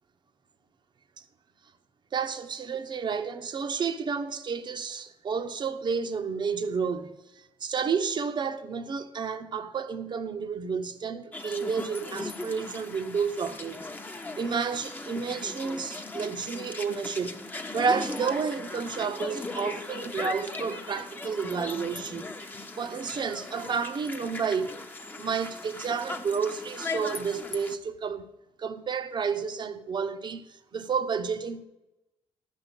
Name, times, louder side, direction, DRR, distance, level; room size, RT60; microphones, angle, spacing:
voice 1, 2.1-13.9 14.4-17.5 17.7-22.3 22.8-24.8 25.2-28.3 28.6-31.7, right 5 dB, 40° right, 0.8 m, -31 dB
sound 1, 11.3-27.8, left 3 dB, 15° left, 0.9 m, -38 dB
11.0 x 5.6 x 8.2 m
cardioid pair, 105°, 11 cm